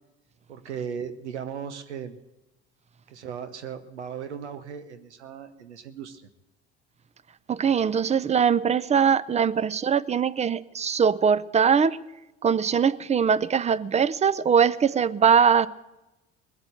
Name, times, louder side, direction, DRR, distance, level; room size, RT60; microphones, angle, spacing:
voice 1, 0.5-2.2 3.1-6.2, right 7 dB, 85° right, 0.9 m, -37 dB
voice 2, 7.5-12.0 12.4-15.7, right 7 dB, 20° right, 0.6 m, -21 dB
21.0 x 8.1 x 7.9 m
hypercardioid pair, 65°, 33 cm